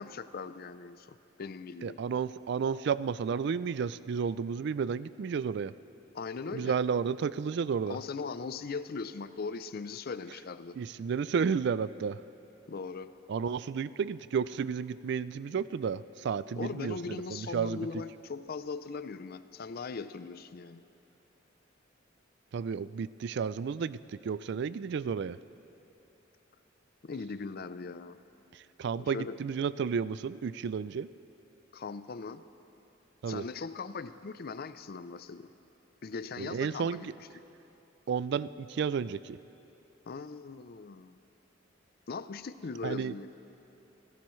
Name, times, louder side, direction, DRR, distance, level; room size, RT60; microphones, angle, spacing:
voice 1, 0.0-2.0 6.1-6.8 7.9-10.8 12.7-13.2 16.6-20.8 27.0-28.2 29.0-29.4 31.7-32.4 33.3-35.5 36.0-37.1 40.1-41.2 42.1-43.3, left 4 dB, 50° left, 13 dB, 0.5 m, -39 dB
voice 2, 1.8-5.7 6.5-8.0 10.8-12.2 13.3-17.0 17.3-17.9 22.5-24.0 24.2-25.4 28.8-31.1 33.2-33.4 36.4-37.0 38.1-39.4 42.8-43.1, right 6 dB, 60° right, 17 dB, 0.3 m, -32 dB
28.0 x 16.0 x 3.2 m, 2.9 s
head